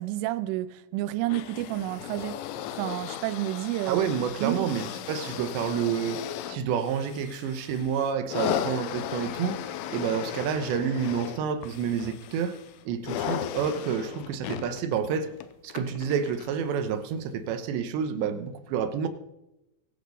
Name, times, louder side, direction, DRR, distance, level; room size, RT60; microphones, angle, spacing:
voice 1, 0.0-2.4 2.8-4.0 4.4-4.8, right 16 dB, 90° right, 3.2 m, -30 dB
sound 1, 1.3-16.7 17.5-17.6, left 10 dB, 80° left, 3.0 m, -36 dB
voice 2, 3.9-6.2 6.5-9.6 9.9-12.6 12.9-15.3 15.6-19.1, right 7 dB, 75° right, 3.1 m, -29 dB
23.5 x 8.6 x 5.3 m
omnidirectional pair, 5.5 m